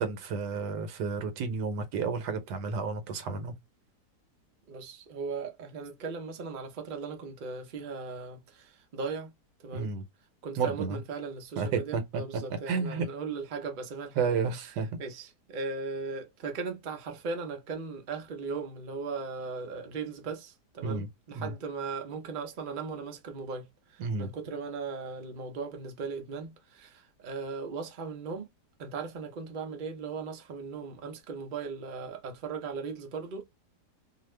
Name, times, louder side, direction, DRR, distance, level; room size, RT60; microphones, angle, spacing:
voice 1, 0.0-3.5 9.7-10.0 10.6-11.0 11.6-12.2 12.7-13.1 14.2-15.0 20.8-21.1 21.4-21.5 24.0-24.3, right 5 dB, 80° right, 1.3 m, -31 dB
voice 2, 4.7-9.3 9.6-9.9 10.4-14.4 15.0-28.5 28.8-33.4, right 4 dB, 55° right, 0.5 m, -38 dB
2.7 x 2.4 x 3.1 m
omnidirectional pair, 1.8 m